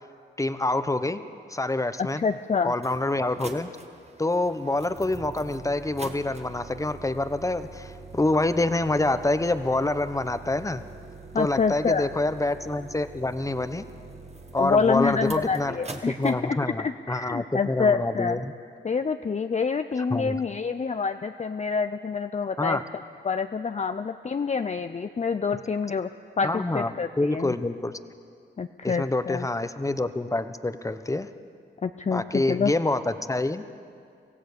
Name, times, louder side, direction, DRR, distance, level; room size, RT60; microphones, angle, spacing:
voice 1, 0.4-1.2 1.5-2.2 2.6-3.7 4.2-10.8 11.3-13.8 14.5-15.8 16.2-18.5 20.1-20.3 22.6-22.8 26.4-26.9 27.2-27.9 28.8-31.3 32.1-33.7, left 2 dB, 15° left, 11 dB, 1.1 m, -26 dB
voice 2, 2.0-2.7 11.3-12.1 14.6-18.4 18.8-22.8 23.2-26.1 26.4-27.5 28.6-29.5 31.8-32.7, left 5 dB, 35° left, 8 dB, 0.6 m, -27 dB
sound 1, 2.1-2.2 2.7-16.3, right 3 dB, 35° right, 1.7 m, -44 dB
24.5 x 15.5 x 6.9 m, 2.3 s
cardioid pair, 55°, 20 cm